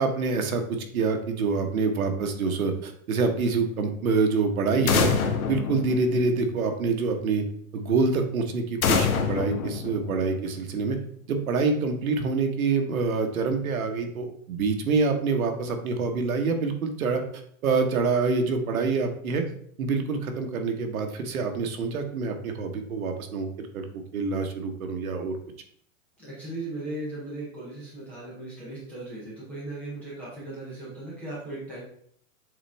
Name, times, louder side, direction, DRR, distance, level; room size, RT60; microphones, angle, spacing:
voice 1, 0.0-5.1 5.5-7.4 7.7-11.0 11.3-17.2 17.6-19.4 19.8-23.9 24.1-25.3, right 4 dB, 80° right, 5 dB, 1.3 m, -26 dB
sound 1, 4.9-6.7 8.8-10.6, left 6 dB, 85° left, 1.2 m, -26 dB
voice 2, 26.2-31.8, right 2 dB, 5° left, -8 dB, 0.5 m, -37 dB
7.4 x 4.0 x 3.4 m, 0.63 s
supercardioid pair, 175°, 41 cm